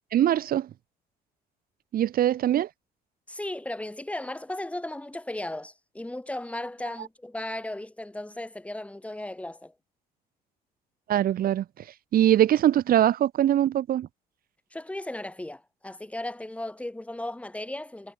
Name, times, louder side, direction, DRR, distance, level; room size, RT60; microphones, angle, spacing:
voice 1, 0.1-0.7 1.9-2.7 11.1-14.1, right 11 dB, 60° right, 2.4 m, -22 dB
voice 2, 3.3-9.7 14.7-18.1, left 1 dB, 5° left, 7.4 m, -36 dB
cardioid pair, 110°, 17 cm